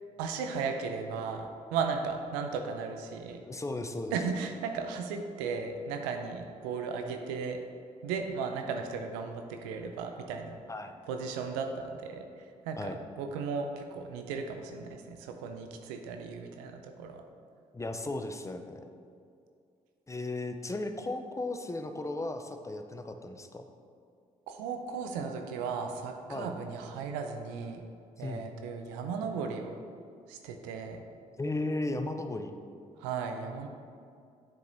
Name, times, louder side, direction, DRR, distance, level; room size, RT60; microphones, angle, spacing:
voice 1, 0.2-3.4 4.1-7.6 8.0-10.6 11.1-12.2 12.7-12.9 13.2-17.2 24.5-27.8 28.2-29.7 30.3-31.0 33.0-33.7, right 5 dB, 85° right, 5 dB, 0.5 m, -35 dB
voice 2, 3.5-4.2 10.7-11.0 12.8-13.0 17.7-18.9 20.1-23.6 26.3-26.5 28.2-28.5 31.4-32.5, left 2 dB, 20° left, 6 dB, 0.5 m, -35 dB
7.5 x 4.7 x 2.7 m, 2.3 s
hypercardioid pair, 45°, 16 cm